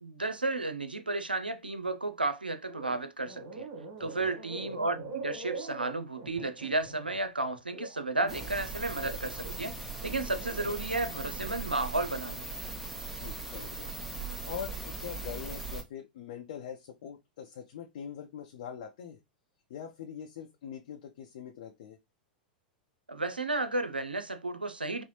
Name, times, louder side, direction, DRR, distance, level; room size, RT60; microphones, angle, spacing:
voice 1, 0.0-3.7 4.0-12.5 23.1-25.0, right 2 dB, 90° right, 0.5 m, -33 dB
sound 1, 2.7-3.0 3.2-8.6 9.0-10.7 11.2-11.5, right 3 dB, 45° right, 1.4 m, -43 dB
voice 2, 4.0-4.3 13.2-13.9 14.4-19.2 19.7-22.0, left 8 dB, 60° left, 0.7 m, -43 dB
sound 2, 8.3-15.8, right 3 dB, ahead, 0.9 m, -39 dB
5.4 x 2.1 x 3.0 m
figure-of-eight pair, 95°, 5 cm